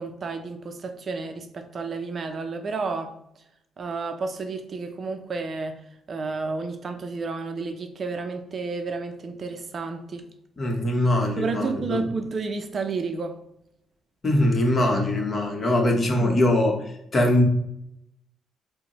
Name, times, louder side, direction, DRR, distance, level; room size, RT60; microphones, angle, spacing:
voice 1, 0.0-3.1 3.8-5.8 6.1-10.3 11.4-13.4 16.2-16.4, right 4 dB, 45° right, 6 dB, 0.5 m, -31 dB
voice 2, 10.6-12.0 14.2-16.7 17.1-17.4, left 1 dB, 35° left, 2 dB, 0.9 m, -22 dB
5.1 x 2.1 x 3.0 m, 0.78 s
cardioid pair, 90°, 0 cm